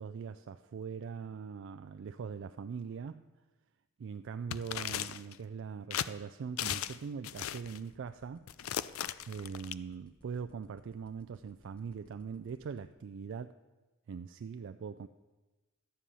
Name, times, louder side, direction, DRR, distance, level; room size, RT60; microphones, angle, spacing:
voice 1, 0.0-3.3 4.0-8.4 9.3-13.6 14.1-15.1, right 6 dB, 55° right, 10 dB, 0.3 m, -42 dB
sound 1, 4.5-5.4 5.9-6.1 6.6-7.0 7.2-7.8 8.5-9.7, left 10 dB, 70° left, 0.4 m, -36 dB
sound 2, 7.3-12.9, equal, 5° left, 1.1 m, -62 dB
12.5 x 10.0 x 5.5 m, 1.2 s
head